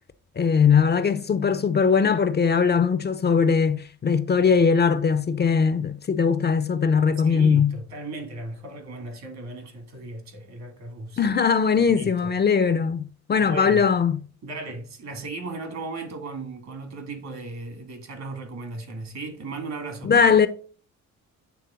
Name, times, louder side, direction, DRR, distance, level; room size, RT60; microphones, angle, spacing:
voice 1, 0.4-7.7 11.2-14.2 20.0-20.5, left 6 dB, 35° left, 0.6 m, -20 dB
voice 2, 7.2-11.2 11.8-12.3 13.4-13.9 14.4-20.1, right 3 dB, 65° right, 2.3 m, -36 dB
8.5 x 3.6 x 3.7 m
cardioid pair, 90°, 30 cm